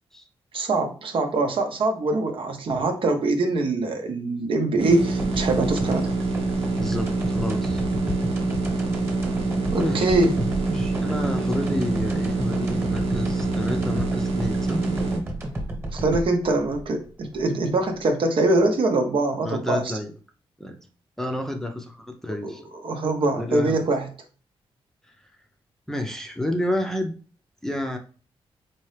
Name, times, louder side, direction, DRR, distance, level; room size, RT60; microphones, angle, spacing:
voice 1, 0.5-6.2 9.7-10.4 15.9-19.9 22.4-22.5 22.8-24.1, right 2 dB, 60° right, 5 dB, 0.8 m, -23 dB
sound 1, 4.8-15.2, right 3 dB, 85° right, 1.0 m, -26 dB
sound 2, 5.2-18.0, right 1 dB, 20° right, 1.2 m, -33 dB
voice 2, 6.8-7.8 9.8-10.2 10.7-14.8 19.4-20.1 20.6-20.8 21.2-22.7 23.3-23.8 25.9-27.1 27.6-28.0, left 1 dB, 5° left, 3 dB, 0.6 m, -30 dB
4.3 x 2.8 x 3.3 m, 0.38 s
cardioid pair, 105°, 10 cm